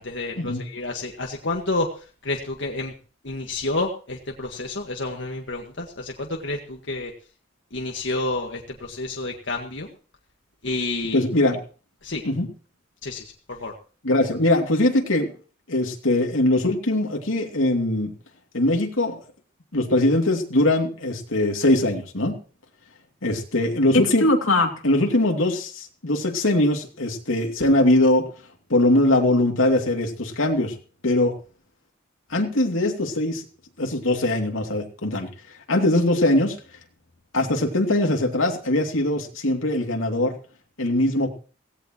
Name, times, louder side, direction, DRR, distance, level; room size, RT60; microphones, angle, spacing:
voice 1, 0.0-2.9 3.2-7.1 7.7-9.9 10.6-11.2 12.0-12.2 13.0-13.7, left 2 dB, 65° left, 1 dB, 1.8 m, -29 dB
voice 2, 11.1-11.6 12.2-12.5 14.0-15.3 15.7-18.1 18.5-19.2 19.7-22.4 23.2-28.2 28.7-30.7 31.0-31.3 32.3-33.4 33.8-35.3 35.7-36.6 37.3-40.3 40.8-41.3, left 1 dB, 85° left, 2 dB, 2.8 m, -21 dB
17.5 x 17.0 x 3.1 m, 0.39 s
head